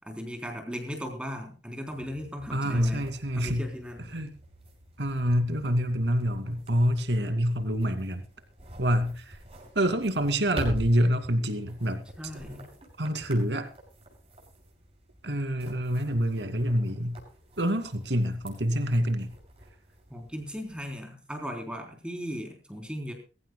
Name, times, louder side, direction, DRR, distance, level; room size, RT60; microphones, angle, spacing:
voice 1, 0.0-3.1 3.3-4.1 12.2-12.7 20.1-23.1, equal, 5° right, 3.8 m, -37 dB
sound 1, 1.9-21.0, equal, 35° right, 6.3 m, -46 dB
voice 2, 2.5-3.7 4.1-4.3 5.0-8.2 8.8-9.4 9.7-12.0 13.0-13.7 15.2-17.2 17.6-19.3, equal, 75° right, 2.6 m, -26 dB
23.0 x 15.5 x 2.3 m
head